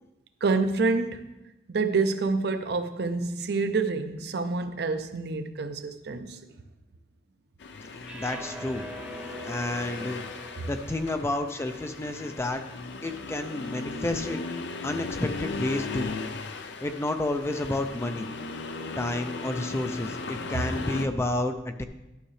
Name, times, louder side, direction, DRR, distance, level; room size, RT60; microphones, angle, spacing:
voice 1, 0.4-1.3 1.7-6.5, right 3 dB, 65° right, 9 dB, 0.6 m, -27 dB
Accelerating revving vroom, 7.6-21.1, left 4 dB, 80° left, 0.5 m, -37 dB
sound 1, 8.0-14.3, equal, 5° right, 0.8 m, -45 dB
voice 2, 8.1-8.8 9.4-10.2 10.7-12.6 13.0-16.1 16.8-18.3 19.0-21.8, left 1 dB, 15° left, 7 dB, 0.3 m, -30 dB
11.5 x 6.4 x 3.2 m, 0.98 s
head